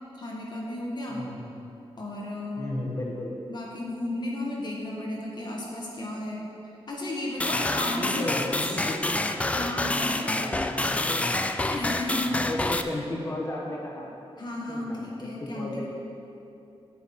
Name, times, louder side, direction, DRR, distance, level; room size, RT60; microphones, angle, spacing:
voice 1, 0.1-1.2 2.0-2.7 3.5-6.4 6.9-8.9 9.5-10.3 11.7-12.5 14.4-15.9, left 1 dB, 45° left, -3 dB, 1.2 m, -33 dB
voice 2, 1.1-1.5 2.6-3.4 7.9-9.3 10.1-11.5 12.2-14.1 14.7-15.9, left 1 dB, 30° left, -3 dB, 1.2 m, -35 dB
sound 1, 7.4-12.8, left 2 dB, 15° left, 0.3 m, -28 dB
9.3 x 8.5 x 4.2 m, 2.8 s
wide cardioid pair, 155°, 10 cm